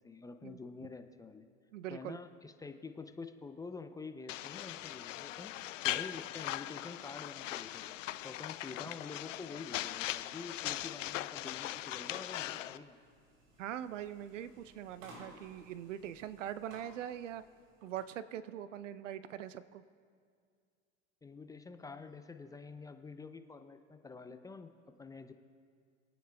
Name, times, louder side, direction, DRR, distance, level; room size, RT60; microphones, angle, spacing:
voice 1, 0.0-1.5 1.9-5.5 5.8-7.8 8.2-13.0 21.2-24.7 25.0-25.3, left 4 dB, 10° left, 8 dB, 0.4 m, -47 dB
voice 2, 1.7-2.2 13.6-17.4 17.8-19.8, right 10 dB, 80° right, 14 dB, 0.7 m, -42 dB
sound 1, 4.3-12.8, left 14 dB, 80° left, 0.5 m, -40 dB
sound 2, 12.3-18.1, right 1 dB, 50° right, 3.6 m, -59 dB
28.0 x 9.3 x 2.3 m, 2.2 s
hypercardioid pair, 100°, 37 cm